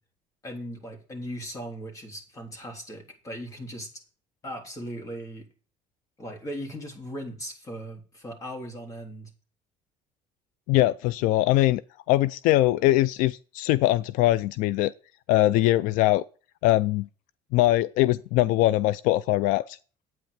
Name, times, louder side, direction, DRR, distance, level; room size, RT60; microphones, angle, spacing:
voice 1, 0.4-4.0 4.4-5.5 6.2-9.3, equal, 25° left, 3.4 m, -38 dB
voice 2, 10.7-11.8 12.1-14.9 15.3-16.2 16.6-17.1 17.5-19.8, left 16 dB, 70° left, 0.4 m, -22 dB
9.2 x 8.9 x 5.0 m
cardioid pair, 150°, 14 cm